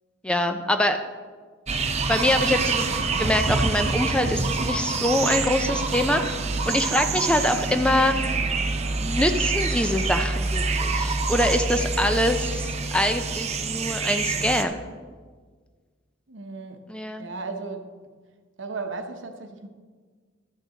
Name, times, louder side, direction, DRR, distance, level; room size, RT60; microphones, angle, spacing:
voice 1, 0.2-1.0 2.1-2.9 3.2-8.2 9.0-14.8 16.9-17.3, left 1 dB, 5° left, 7 dB, 0.5 m, -24 dB
sound 1, 1.7-14.6, right 3 dB, 35° right, 0.6 m, -26 dB
voice 2, 16.3-16.8 17.2-18.1 18.6-19.7, right 4 dB, 70° right, 6 dB, 0.9 m, -35 dB
13.0 x 6.5 x 5.1 m, 1.5 s
head